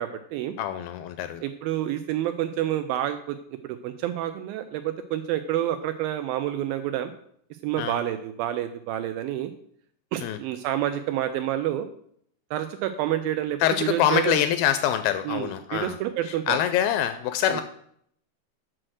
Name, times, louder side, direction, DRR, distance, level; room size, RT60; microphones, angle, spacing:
voice 1, 0.0-0.5 1.4-3.4 3.6-7.1 7.6-9.5 10.1-11.9 12.5-14.4 15.3-16.6 17.5-17.6, right 12 dB, 80° right, 9 dB, 2.1 m, -28 dB
voice 2, 0.6-1.4 7.8-8.0 10.2-10.4 13.6-16.0 16.2-17.6, left 11 dB, 85° left, 9 dB, 2.2 m, -25 dB
7.7 x 6.1 x 6.2 m, 0.67 s
omnidirectional pair, 4.6 m